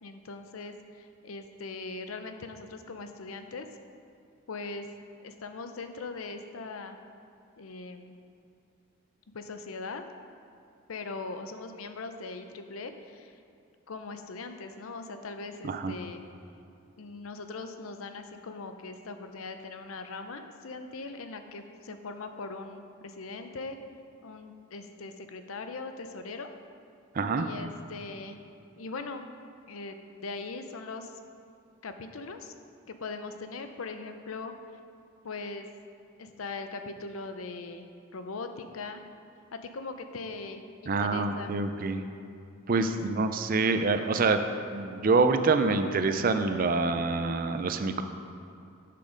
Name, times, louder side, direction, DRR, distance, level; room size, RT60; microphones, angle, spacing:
voice 1, 0.0-3.7 4.5-4.9 5.2-7.0 7.6-8.1 9.3-10.0 10.9-13.4 13.9-16.2 17.0-23.8 24.2-26.5 27.4-28.4 28.8-29.2 29.7-31.1 31.8-32.5 32.9-34.5 35.2-35.7 36.2-37.8 38.1-39.0 39.5-41.5 42.8-43.0, left 3 dB, 85° left, 7 dB, 0.6 m, -40 dB
voice 2, 27.1-27.5 40.9-42.0 42.7-44.4 44.7-48.0, right 3 dB, 45° right, 8 dB, 0.5 m, -26 dB
7.7 x 7.1 x 5.1 m, 2.5 s
head